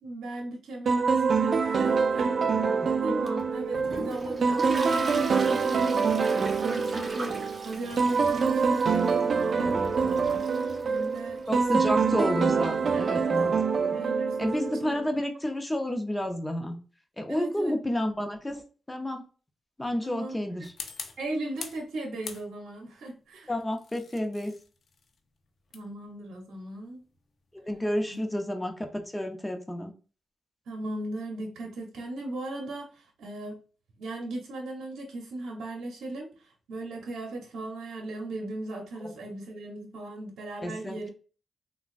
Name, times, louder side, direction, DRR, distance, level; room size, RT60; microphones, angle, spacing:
voice 1, 0.0-2.5 3.0-11.9 12.9-13.3 13.9-15.0 17.3-17.7 20.0-20.4 21.2-23.5 25.7-27.0 28.1-28.2 30.7-33.6 34.0-41.1, right 2 dB, 85° right, 2 dB, 0.7 m, -38 dB
sound 1, 0.9-15.1, right 5 dB, 65° right, 0.3 m, -26 dB
Toilet flush, 3.3-13.5, right 2 dB, 50° right, 0.7 m, -41 dB
voice 2, 11.5-14.0 14.4-16.8 17.2-18.6 18.9-19.2 19.8-20.7 23.5-24.5 27.5-29.9 40.6-41.1, left 1 dB, 15° left, 5 dB, 0.7 m, -30 dB
sound 2, 20.6-21.9 22.2-22.9 23.6-28.3, left 5 dB, 70° left, 0.5 m, -45 dB
3.7 x 2.2 x 2.5 m, 0.37 s
cardioid pair, 50°, 0 cm